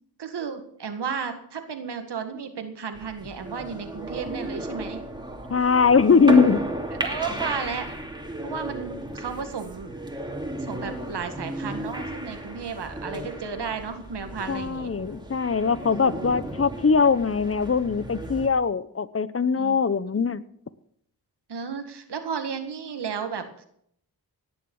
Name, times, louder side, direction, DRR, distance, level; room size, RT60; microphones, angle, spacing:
voice 1, 0.2-5.0 7.0-8.0 8.4-9.9 10.6-14.9 15.7-16.2 19.6-20.2 21.5-23.6, right 6 dB, 85° right, 7 dB, 1.8 m, -33 dB
sound 1, 2.9-18.5, equal, 10° right, 2.6 m, -34 dB
voice 2, 5.5-6.6 13.1-13.3 14.5-20.4, left 5 dB, 35° left, 16 dB, 0.8 m, -21 dB
17.5 x 7.0 x 7.1 m, 0.69 s
cardioid pair, 55°, 39 cm